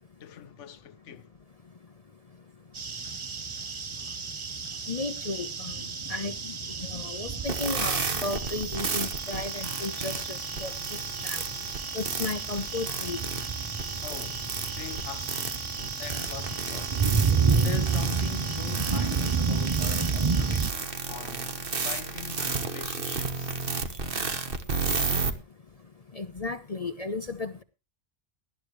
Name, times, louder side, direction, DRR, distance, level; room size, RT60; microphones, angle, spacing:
voice 1, 0.2-1.3 4.0-4.2 14.0-15.6 16.0-17.0 17.5-23.5, left 8 dB, 80° left, 1.2 m, -42 dB
sound 1, 2.7-20.7, right 5 dB, 35° right, 0.6 m, -30 dB
voice 2, 4.9-5.7 6.1-6.5 6.9-10.7 11.2-11.4 11.9-13.2 26.1-27.6, left 3 dB, 35° left, 0.8 m, -34 dB
sound 2, 7.4-25.3, right 4 dB, 50° right, 1.4 m, -33 dB
18.5 x 11.5 x 3.1 m
omnidirectional pair, 1.2 m